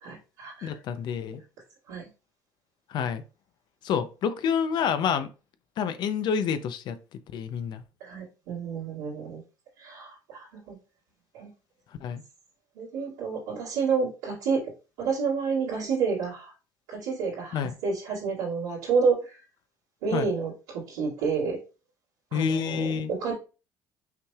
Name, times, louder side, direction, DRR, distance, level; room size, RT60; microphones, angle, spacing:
voice 1, 0.0-0.8 1.9-2.1 8.0-9.4 9.8-10.8 11.3-11.5 12.7-14.6 15.0-16.5 16.9-19.4 20.0-21.6 22.3-23.3, right 5 dB, 85° right, 2.2 m, -29 dB
voice 2, 0.6-1.4 2.9-3.2 3.8-5.3 5.8-7.0 7.3-7.8 12.0-12.2 17.5-17.7 20.1-20.3 22.3-23.1, left 7 dB, 60° left, 0.6 m, -28 dB
5.7 x 3.1 x 2.4 m
supercardioid pair, 80°, 9 cm